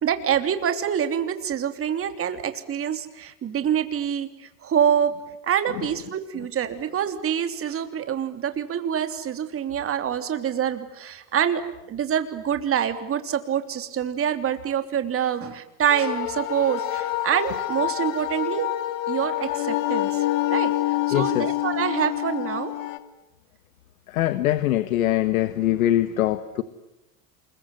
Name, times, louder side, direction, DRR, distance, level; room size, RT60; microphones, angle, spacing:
voice 1, 0.0-5.1 5.4-11.6 11.9-18.7 19.1-20.7 21.1-22.7, right 9 dB, 35° right, 8 dB, 3.1 m, -26 dB
sound 1, 15.9-23.0, left 15 dB, 70° left, 2.5 m, -27 dB
voice 2, 21.1-21.5 24.1-26.6, left 13 dB, 85° left, 12 dB, 1.5 m, -23 dB
28.0 x 22.0 x 9.6 m, 0.95 s
supercardioid pair, 110°, 40 cm